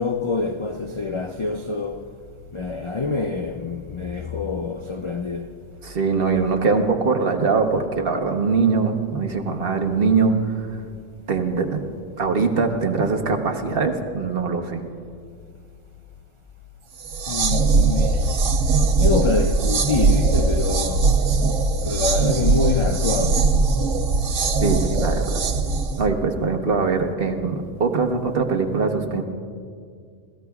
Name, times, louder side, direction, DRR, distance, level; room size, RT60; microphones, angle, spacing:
voice 1, 0.0-2.2 2.5-5.5 17.3-18.4 19.0-21.1 21.8-23.5, left 4 dB, 55° left, 0.3 m, -26 dB
voice 2, 5.8-10.5 11.3-11.8 12.2-14.8 24.6-25.4 26.0-29.2, right 4 dB, 50° right, 1.2 m, -22 dB
sound 1, 17.0-26.1, right 3 dB, 75° right, 1.3 m, -20 dB
29.5 x 17.5 x 2.4 m
omnidirectional pair, 1.3 m